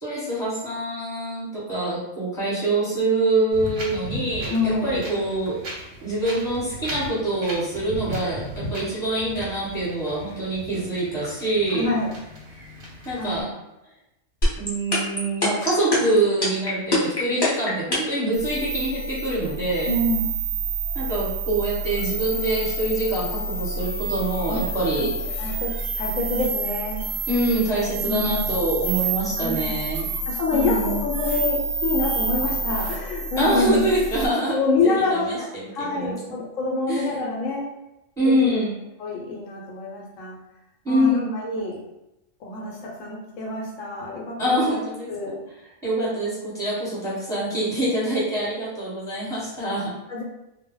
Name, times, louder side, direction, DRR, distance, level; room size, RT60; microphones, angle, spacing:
voice 1, 0.0-5.6 6.0-11.9 13.0-13.4 14.6-19.9 20.9-25.1 27.3-30.1 30.5-31.0 33.4-36.2 36.9-37.0 38.2-38.7 40.8-41.3 44.4-45.4 45.8-49.9, right 1 dB, 5° left, -8 dB, 1.0 m, -25 dB
Wind, 3.5-13.4, right 1 dB, 55° right, 0.7 m, -37 dB
voice 2, 4.5-5.0 11.7-12.1 13.2-13.4 19.8-20.4 24.4-24.6 25.0-25.1 25.4-27.0 27.7-28.4 29.4-29.8 30.3-33.9 34.5-35.5 35.7-37.7 38.2-38.6 39.0-40.4 40.9-41.8 42.4-44.8 45.1-45.3 50.1-50.2, left 3 dB, 75° left, -2 dB, 0.9 m, -26 dB
sound 1, 14.4-18.2, left 2 dB, 25° left, 0.5 m, -21 dB
sound 2, 18.3-34.3, right 2 dB, 90° right, 1.0 m, -29 dB
2.2 x 2.0 x 3.7 m, 0.92 s
omnidirectional pair, 1.4 m